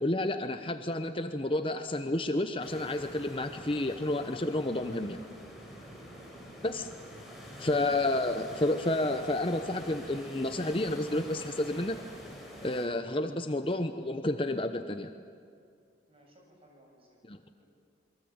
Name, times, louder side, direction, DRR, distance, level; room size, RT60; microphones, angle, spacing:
voice 1, 0.0-5.2 6.6-6.9 7.6-12.0 12.6-15.1 17.3-17.4, left 1 dB, 30° left, 7 dB, 0.9 m, -30 dB
sound 1, 2.6-12.9, equal, ahead, 6.0 m, -46 dB
voice 2, 5.7-6.5 16.1-17.2 17.6-17.7, right 1 dB, 30° right, 0 dB, 7.7 m, -61 dB
28.5 x 23.5 x 8.9 m, 2.4 s
head